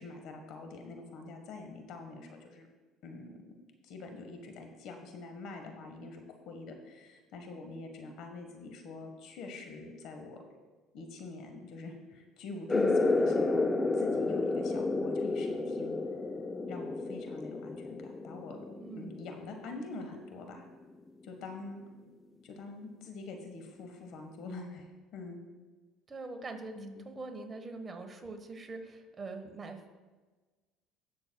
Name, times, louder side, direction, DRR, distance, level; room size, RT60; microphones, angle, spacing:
voice 1, 0.0-2.7 3.0-3.3 3.8-10.4 10.9-13.6 13.9-16.0 16.7-18.6 19.0-20.7 21.2-21.8 22.4-25.4 26.8-27.0, left 3 dB, 65° left, 5 dB, 1.3 m, -45 dB
sound 1, 12.7-19.8, left 3 dB, 20° left, 0.6 m, -31 dB
voice 2, 18.8-19.2 26.1-26.7 27.0-30.0, right 3 dB, 30° right, 6 dB, 1.2 m, -43 dB
19.0 x 6.4 x 2.3 m, 1.3 s
supercardioid pair, 85°, 0 cm